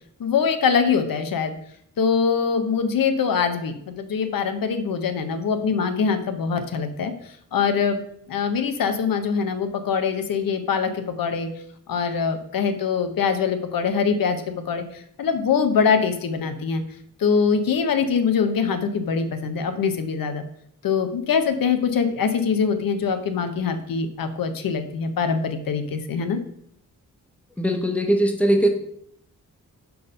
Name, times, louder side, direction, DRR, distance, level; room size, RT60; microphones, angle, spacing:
voice 1, 0.2-1.5 2.0-7.1 7.5-8.0 8.3-11.5 11.9-16.8 17.2-20.4 20.8-26.4, left 6 dB, 80° left, 8 dB, 0.8 m, -23 dB
voice 2, 27.6-28.7, right 1 dB, 5° left, 5 dB, 0.9 m, -20 dB
5.1 x 4.7 x 5.3 m, 0.69 s
wide cardioid pair, 110°, 34 cm